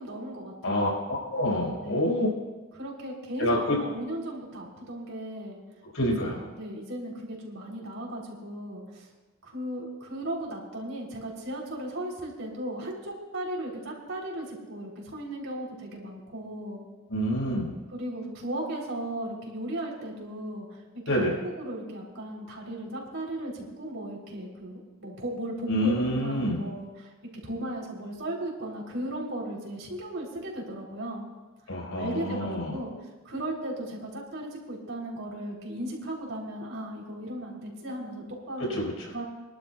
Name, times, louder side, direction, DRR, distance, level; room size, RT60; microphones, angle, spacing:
voice 1, 0.0-0.9 1.8-2.1 2.7-5.6 6.0-9.1 9.4-16.8 17.9-20.7 21.1-27.1 27.4-31.3 32.0-32.9 33.3-38.8 39.1-39.2, right 1 dB, 70° right, -2 dB, 3.6 m, -36 dB
voice 2, 0.6-2.3 3.4-3.8 5.9-6.4 17.1-17.7 21.1-21.3 25.7-26.6 31.7-32.7 38.8-38.9, equal, 85° left, -3 dB, 5.1 m, -27 dB
25.0 x 12.0 x 2.4 m, 1.2 s
head